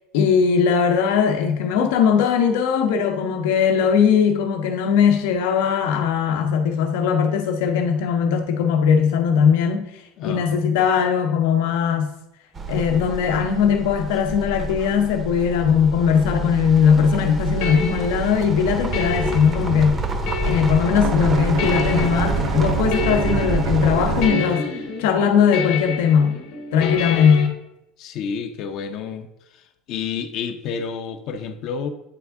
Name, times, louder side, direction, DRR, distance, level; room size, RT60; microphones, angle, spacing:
voice 1, 0.1-9.9 10.2-12.1 12.7-20.0 20.4-24.7 25.0-26.4 26.7-27.5, left 7 dB, 85° left, 0.8 m, -19 dB
voice 2, 10.2-10.8 28.0-29.3 29.9-31.9, left 6 dB, 50° left, 0.5 m, -30 dB
sound 1, 12.5-24.3, right 3 dB, 20° right, 0.6 m, -27 dB
sound 2, 16.9-27.5, left 6 dB, 65° left, 1.0 m, -30 dB
Bowed string instrument, 21.0-25.1, right 8 dB, 75° right, 0.7 m, -29 dB
8.4 x 3.4 x 3.5 m
cardioid pair, 160°, 0 cm